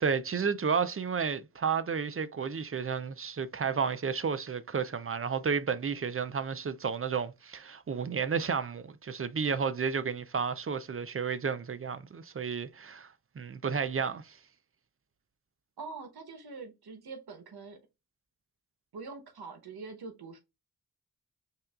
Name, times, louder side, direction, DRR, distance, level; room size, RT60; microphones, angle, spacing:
voice 1, 0.0-14.4, right 6 dB, 35° right, 0.5 m, -32 dB
voice 2, 15.8-17.8 18.9-20.4, right 4 dB, 85° right, 1.0 m, -44 dB
5.5 x 2.4 x 2.3 m
cardioid pair, 50°, 37 cm